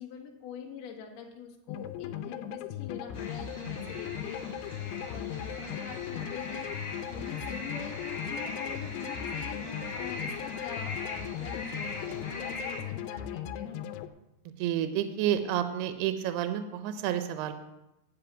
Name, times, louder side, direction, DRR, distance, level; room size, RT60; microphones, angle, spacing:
voice 1, 0.0-13.7, left 7 dB, 55° left, 1 dB, 2.2 m, -45 dB
sound 1, 1.7-14.1, left 10 dB, 90° left, 2.7 m, -38 dB
sound 2, 3.1-12.8, left 2 dB, 20° left, 2.3 m, -40 dB
voice 2, 14.6-17.5, right 10 dB, 85° right, 9 dB, 2.7 m, -30 dB
12.0 x 5.4 x 8.8 m, 0.93 s
omnidirectional pair, 4.6 m